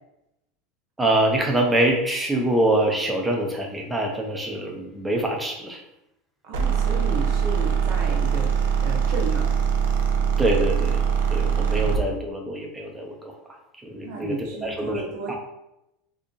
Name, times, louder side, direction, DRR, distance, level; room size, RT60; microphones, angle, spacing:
voice 1, 1.0-5.8 10.4-11.0 11.3-13.3 13.8-15.0 15.3-15.4, right 1 dB, 5° right, 1 dB, 0.5 m, -24 dB
voice 2, 6.4-9.5 11.8-11.9 14.0-15.4, right 2 dB, 50° right, 0 dB, 0.9 m, -33 dB
sound 1, 6.5-12.1, right 7 dB, 80° right, 0.5 m, -22 dB
2.8 x 2.6 x 3.7 m, 0.88 s
supercardioid pair, 170°, 0 cm